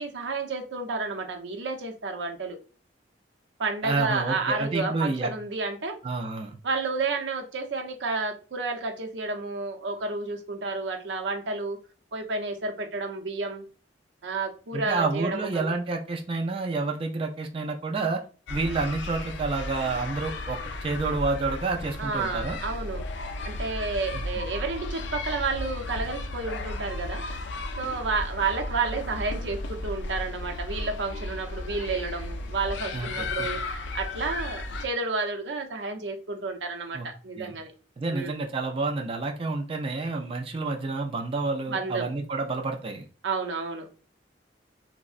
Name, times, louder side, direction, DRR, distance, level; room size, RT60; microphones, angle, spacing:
voice 1, 0.0-2.6 3.6-6.0 6.6-11.8 12.1-13.6 14.2-15.7 22.0-23.0 23.4-27.2 27.8-33.6 33.9-37.7 38.1-38.4 41.7-42.1 43.2-43.9, right 3 dB, 85° right, 3 dB, 0.6 m, -31 dB
voice 2, 3.8-5.3 6.0-6.6 14.7-18.2 18.5-22.6 24.1-24.2 32.9-33.5 36.9-37.1 37.4-37.5 38.0-43.1, right 3 dB, 30° right, 2 dB, 0.3 m, -29 dB
sound 1, 18.5-34.9, left 2 dB, 85° left, 0.4 m, -34 dB
3.5 x 2.0 x 2.4 m, 0.36 s
head